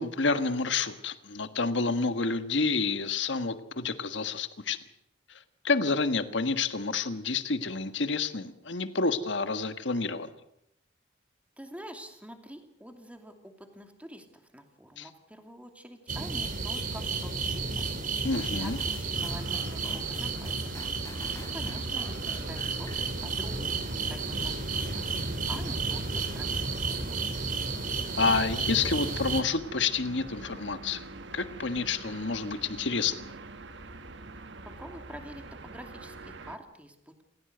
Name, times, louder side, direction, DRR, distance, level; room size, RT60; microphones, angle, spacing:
voice 1, 0.0-4.8 5.6-10.3 15.0-15.1 18.2-18.8 28.2-31.1 31.3-33.3, left 4 dB, 65° left, 10 dB, 1.6 m, -29 dB
voice 2, 11.6-18.0 18.4-20.5 21.0-27.6 34.6-37.2, equal, 5° right, 5 dB, 2.7 m, -47 dB
sound 1, 16.1-29.4, right 4 dB, 45° right, 2.9 m, -32 dB
sound 2, 18.3-24.2 24.7-24.8, left 2 dB, 15° left, 3.4 m, -49 dB
sound 3, 19.1-36.6, right 2 dB, 65° right, 1.5 m, -46 dB
28.5 x 16.0 x 8.0 m, 0.77 s
head